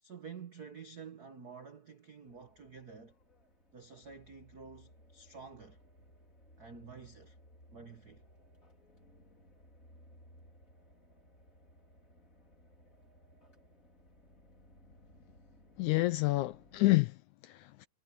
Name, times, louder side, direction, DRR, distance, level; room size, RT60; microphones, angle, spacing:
voice 1, 0.0-3.1 3.7-5.8 6.6-7.4 7.7-8.2, right 5 dB, 85° right, 0.8 m, -50 dB
sound 1, 2.2-16.8, equal, 25° left, 4.7 m, -61 dB
voice 2, 15.8-17.9, left 20 dB, 80° left, 1.8 m, -29 dB
omnidirectional pair, 3.9 m